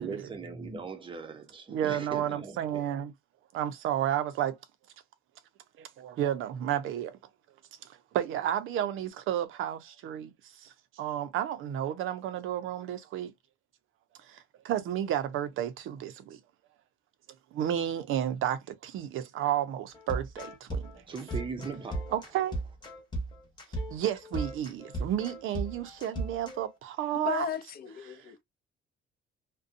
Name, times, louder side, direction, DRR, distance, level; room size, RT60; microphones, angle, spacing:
voice 1, 0.0-3.1 20.9-22.1, right 5 dB, 25° right, 0.6 m, -40 dB
voice 2, 1.7-3.1 3.5-4.6 5.8-7.2 7.8-13.3 14.2-16.4 17.5-21.0 22.1-22.6 23.9-27.5 28.1-28.2, right 11 dB, 75° right, 0.6 m, -32 dB
sound 1, 19.9-26.7, right 1 dB, 20° left, 1.0 m, -36 dB
voice 3, 27.1-28.4, left 9 dB, 45° left, 0.6 m, -35 dB
2.6 x 2.2 x 2.4 m
cardioid pair, 165°, 21 cm